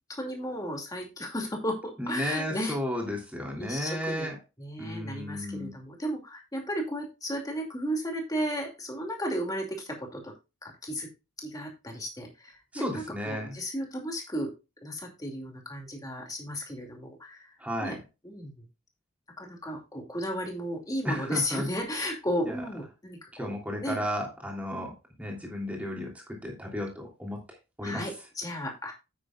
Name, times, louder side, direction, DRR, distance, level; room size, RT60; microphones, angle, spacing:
voice 1, 0.1-2.8 3.6-4.3 4.6-10.3 10.6-11.1 11.4-14.5 14.8-17.5 17.8-18.0 18.2-18.6 19.4-23.5 23.8-24.0 24.7-24.9 27.8-28.9, equal, 15° left, 1 dB, 2.5 m, -34 dB
voice 2, 2.0-4.3 4.8-5.7 12.7-13.5 17.6-18.0 21.0-21.7 22.5-22.6 23.4-24.9 25.2-26.1 26.4-27.4 27.8-28.1, equal, 5° right, -1 dB, 3.0 m, -33 dB
9.1 x 9.0 x 2.4 m, 0.26 s
head